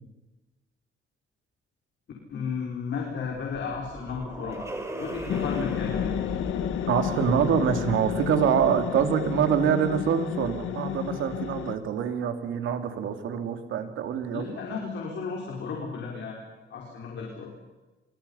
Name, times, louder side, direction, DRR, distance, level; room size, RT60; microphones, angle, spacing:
voice 1, 2.3-4.6 5.0-6.1 14.3-16.4 16.7-17.5, left 5 dB, 65° left, -1 dB, 5.4 m, -34 dB
sound 1, 3.3-9.4, right 1 dB, 15° right, 5.0 m, -39 dB
sound 2, 5.3-11.8, left 10 dB, 85° left, 1.8 m, -31 dB
voice 2, 6.9-14.6, right 8 dB, 80° right, 7 dB, 2.9 m, -25 dB
27.5 x 25.0 x 5.8 m, 1.1 s
cardioid pair, 90°, 20 cm